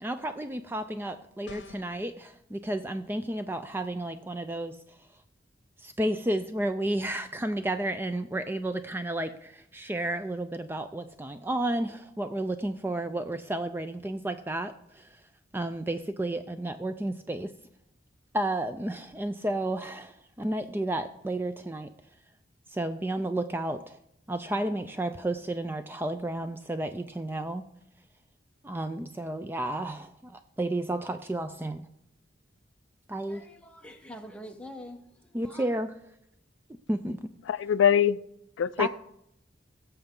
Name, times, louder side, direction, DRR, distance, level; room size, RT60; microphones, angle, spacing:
voice 1, 0.0-4.8 5.8-15.2 15.5-17.5 18.3-21.9 22.7-24.0 24.3-27.6 28.6-31.9 33.1-33.5 35.3-35.9 36.9-37.2 38.8-38.9, right 1 dB, 10° right, 10 dB, 0.3 m, -32 dB
sound 1, 1.5-2.0, left 3 dB, 65° left, 1.0 m, -45 dB
voice 2, 33.3-35.8, equal, 5° left, 3 dB, 0.9 m, -45 dB
voice 3, 37.5-38.2 38.6-38.9, left 8 dB, 80° left, 17 dB, 0.3 m, -23 dB
17.0 x 6.9 x 3.7 m, 0.76 s
head